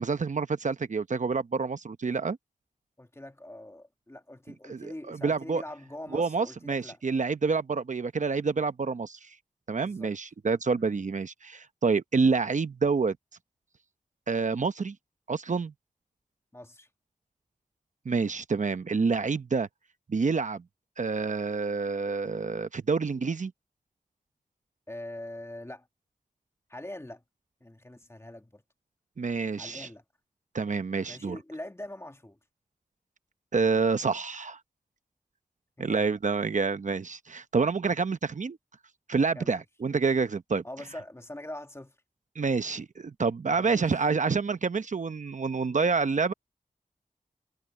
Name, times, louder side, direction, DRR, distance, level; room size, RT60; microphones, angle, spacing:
voice 1, 0.0-2.4 4.7-5.6 6.1-9.3 9.7-13.2 14.3-15.0 15.3-15.7 18.0-19.7 20.1-20.6 21.0-23.5 29.2-29.9 30.5-31.4 33.5-34.6 35.8-38.6 39.1-40.6 42.4-46.3, right 4 dB, 60° right, 0.8 m, -28 dB
voice 2, 3.0-7.0 9.7-10.1 10.7-11.0 16.5-16.9 24.9-25.9 26.7-27.2 27.6-28.6 29.6-30.0 31.1-32.4 35.8-36.1 39.4-39.6 40.6-42.0 43.5-44.1, left 1 dB, 20° left, 2.0 m, -43 dB
wide cardioid pair, 60°, 14 cm